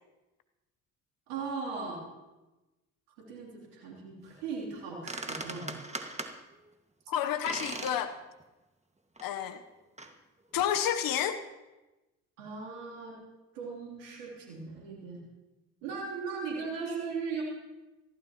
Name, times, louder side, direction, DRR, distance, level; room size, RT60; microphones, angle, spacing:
voice 1, 1.3-2.0 3.2-5.7 12.4-13.2 13.5-15.2 15.8-17.4, right 5 dB, 90° right, -3 dB, 3.2 m, -38 dB
sound 1, 4.8-4.9 5.1-6.4 7.5-8.0 8.4-8.5 9.2-9.3 10.0-10.1, right 2 dB, 20° right, 1.8 m, -38 dB
voice 2, 7.1-8.1 9.2-9.6 10.5-11.4, left 9 dB, 65° left, 9 dB, 1.0 m, -30 dB
22.5 x 15.5 x 3.0 m, 1.1 s
hypercardioid pair, 50°, 37 cm